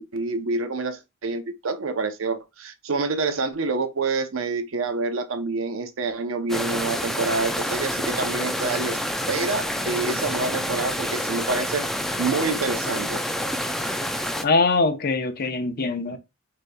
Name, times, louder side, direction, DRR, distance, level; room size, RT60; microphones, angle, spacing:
voice 1, 0.0-9.0 9.3-11.8 12.2-13.2, right 3 dB, 80° right, 0.7 m, -27 dB
sound 1, 6.5-14.4, equal, ahead, 0.4 m, -28 dB
voice 2, 14.4-16.2, left 3 dB, 50° left, 0.7 m, -22 dB
6.4 x 3.0 x 2.2 m
head